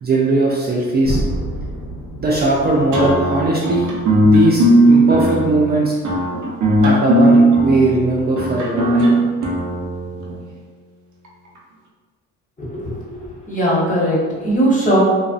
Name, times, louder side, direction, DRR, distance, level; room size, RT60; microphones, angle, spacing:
voice 1, 0.0-1.2 2.2-3.9 4.2-5.9 6.8-9.1, right 2 dB, 35° right, -4 dB, 0.4 m, -18 dB
sound 1, 1.0-5.0, equal, 65° left, 0.7 m, -29 dB
sound 2, 2.9-10.3, equal, 75° right, 0.6 m, -16 dB
voice 2, 12.6-15.0, right 1 dB, 25° left, -5 dB, 0.8 m, -19 dB
2.5 x 2.1 x 2.4 m, 1.4 s
cardioid pair, 90°, 30 cm